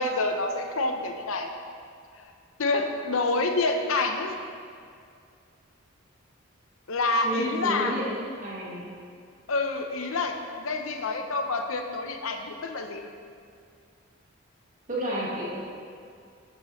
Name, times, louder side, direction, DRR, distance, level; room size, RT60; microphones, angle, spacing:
voice 1, 0.0-1.5 2.2-2.3 2.6-4.3 6.9-8.0 9.5-13.0, left 3 dB, 75° left, 5 dB, 0.8 m, -27 dB
voice 2, 7.2-8.1 8.4-8.9 14.9-15.6, equal, 40° right, -6 dB, 1.8 m, -30 dB
11.5 x 6.8 x 3.2 m, 2.3 s
head